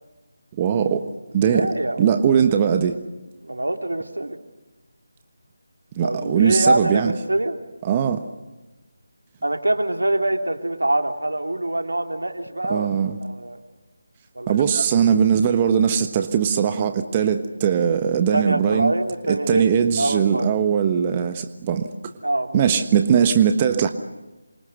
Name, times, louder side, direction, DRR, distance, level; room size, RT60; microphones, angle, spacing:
voice 1, 0.6-1.0 1.3-1.7 2.0-3.0 6.0-7.1 7.8-8.2 12.7-13.2 14.5-18.9 19.3-21.9 22.5-23.9, right 8 dB, 25° right, 7 dB, 1.3 m, -20 dB
voice 2, 1.5-2.0 3.4-4.4 6.0-7.6 9.4-12.9 13.2-13.6 14.3-14.8 18.3-19.7 20.0-20.5 22.2-22.6, right 1 dB, 85° right, 5 dB, 3.3 m, -24 dB
28.0 x 25.5 x 6.7 m, 1.1 s
figure-of-eight pair, 160°, 0 cm